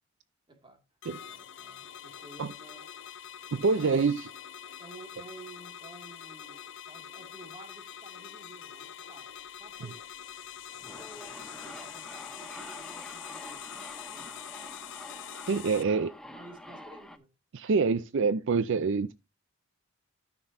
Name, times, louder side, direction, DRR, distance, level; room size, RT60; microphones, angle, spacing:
voice 1, 0.5-0.8 1.2-2.8 3.4-4.0 4.8-9.3 9.6-10.1 10.8-14.4 16.3-17.3, right 2 dB, 20° right, 2.1 m, -52 dB
sound 1, 1.0-15.8, left 9 dB, 60° left, 0.6 m, -45 dB
voice 2, 3.5-4.3 15.5-16.1 17.5-19.1, right 4 dB, 60° right, 0.4 m, -26 dB
sound 2, 10.6-17.2, left 1 dB, 5° left, 0.7 m, -46 dB
13.0 x 6.1 x 2.6 m
head